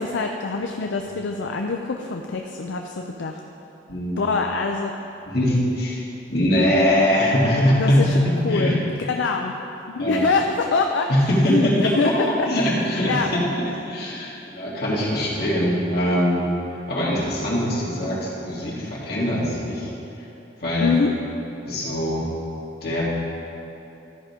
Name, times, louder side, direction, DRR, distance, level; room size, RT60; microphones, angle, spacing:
voice 1, 0.0-3.4 4.2-4.9 7.4-7.5 7.8-8.2 8.4-9.5 9.9-11.1 11.5-12.3 13.0-13.3 20.8-21.1, left 4 dB, 70° left, 3 dB, 0.5 m, -24 dB
voice 2, 5.2-6.0 6.3-8.8 10.0-10.2 11.3-12.1 12.5-16.4 16.9-19.9 20.6-20.9 21.7-22.2 22.8-23.0, equal, 55° left, -6 dB, 2.2 m, -22 dB
13.0 x 5.2 x 4.9 m, 3.0 s
head